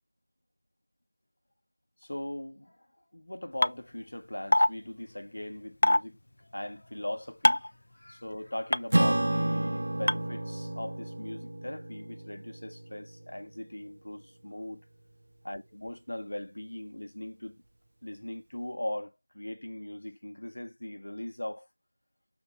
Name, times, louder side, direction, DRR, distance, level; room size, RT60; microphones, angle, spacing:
voice 1, 2.0-2.9 3.1-14.8 15.4-17.6 18.0-21.7, left 1 dB, 70° left, 1.3 m, -39 dB
sound 1, 3.6-3.7 4.5-4.7 5.8-6.0 7.4-7.7 8.7-8.8 10.1-10.2, left 1 dB, 55° left, 0.4 m, -21 dB
Acoustic guitar / Strum, 8.9-13.6, right 1 dB, 55° right, 0.5 m, -31 dB
7.0 x 2.9 x 5.5 m
figure-of-eight pair, 175°, 0 cm